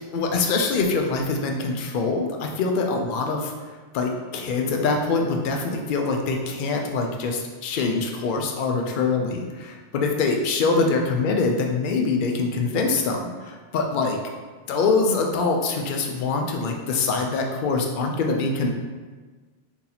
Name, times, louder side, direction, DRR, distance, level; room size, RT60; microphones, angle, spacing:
voice 1, 0.0-3.5 3.9-14.2 14.7-18.7, left 4 dB, 60° left, 2 dB, 0.5 m, -24 dB
2.8 x 2.7 x 3.9 m, 1.4 s
omnidirectional pair, 1.2 m